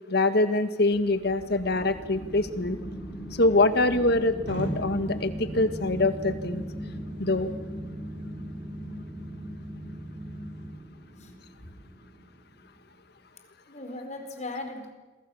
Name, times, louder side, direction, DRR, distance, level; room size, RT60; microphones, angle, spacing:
voice 1, 0.1-2.8 3.4-6.6 7.2-7.5, left 2 dB, 60° left, 10 dB, 1.8 m, -24 dB
sound 1, 0.9-13.0, equal, 5° right, 3.3 m, -43 dB
sound 2, 4.5-10.7, equal, 70° right, 5.0 m, -37 dB
voice 2, 10.8-11.3 13.7-14.9, left 2 dB, 40° left, 5 dB, 4.7 m, -39 dB
27.5 x 23.5 x 7.2 m, 1.2 s
head